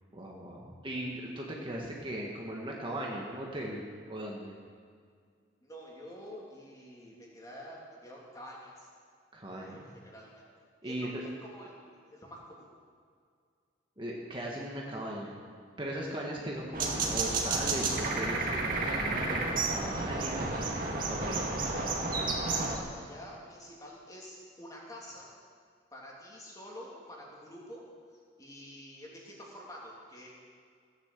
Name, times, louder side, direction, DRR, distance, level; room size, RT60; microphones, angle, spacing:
voice 1, 0.1-4.5 9.3-10.0 10.8-11.2 14.0-15.4 15.8-20.5 21.1-21.4, right 1 dB, 25° right, -2 dB, 1.6 m, -38 dB
voice 2, 5.6-8.9 9.4-10.4 10.8-11.8 12.0-12.7 22.4-25.3 25.9-27.8 28.4-30.3, equal, 20° left, -4 dB, 3.0 m, -48 dB
sound 1, 16.7-22.8, right 3 dB, 45° right, 2.1 m, -31 dB
16.5 x 9.9 x 7.6 m, 2.1 s
head